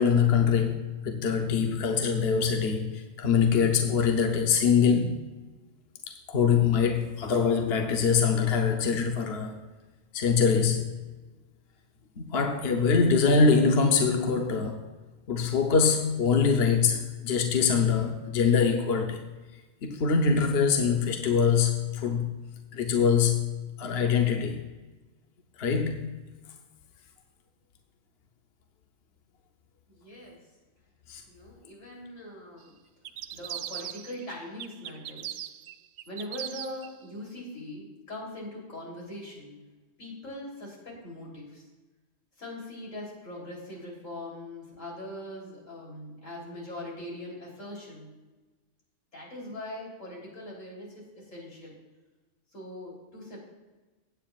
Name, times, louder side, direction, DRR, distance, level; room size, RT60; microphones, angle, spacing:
voice 1, 0.0-5.2 6.1-9.6 10.1-10.9 12.2-14.8 15.3-19.3 19.8-22.3 22.7-23.4 23.8-24.6 25.6-26.1 31.1-31.2, left 6 dB, 60° left, 1.0 m, -24 dB
voice 2, 29.9-30.5 31.3-32.7 33.3-35.3 36.1-39.6 40.0-41.6 42.4-48.1 49.1-51.7 52.5-53.4, left 1 dB, 85° left, 3.8 m, -41 dB
sound 1, 33.0-34.3 34.6-36.9, right 11 dB, 75° right, 0.9 m, -39 dB
16.0 x 9.0 x 2.4 m
omnidirectional pair, 1.3 m